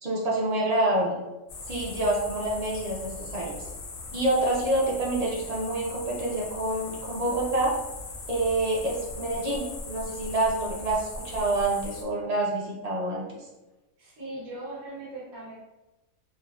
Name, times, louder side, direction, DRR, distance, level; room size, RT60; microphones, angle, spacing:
voice 1, 0.0-1.2 1.7-3.6 4.1-7.7 8.3-13.5, right 2 dB, 60° right, -4 dB, 0.4 m, -27 dB
sound 1, 1.5-12.0, left 3 dB, 70° left, 0.5 m, -40 dB
voice 2, 14.0-15.5, right 2 dB, 90° right, -8 dB, 1.4 m, -39 dB
4.4 x 2.1 x 2.2 m, 1.0 s
omnidirectional pair, 1.5 m